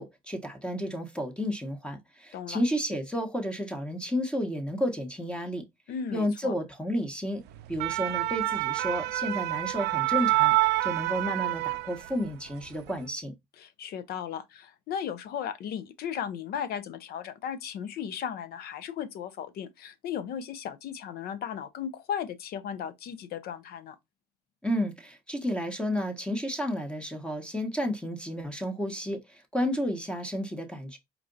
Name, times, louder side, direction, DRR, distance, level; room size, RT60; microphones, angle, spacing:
voice 1, 0.0-5.6 6.1-7.4 7.7-10.5 10.8-13.3 24.6-31.0, equal, 5° left, 1.0 m, -31 dB
voice 2, 5.9-6.5 13.6-24.0, left 8 dB, 65° left, 0.7 m, -36 dB
sound 1, 7.5-12.3 12.7-12.9, right 18 dB, 75° right, 0.4 m, -27 dB
4.6 x 2.5 x 3.8 m
cardioid pair, 110°, 17 cm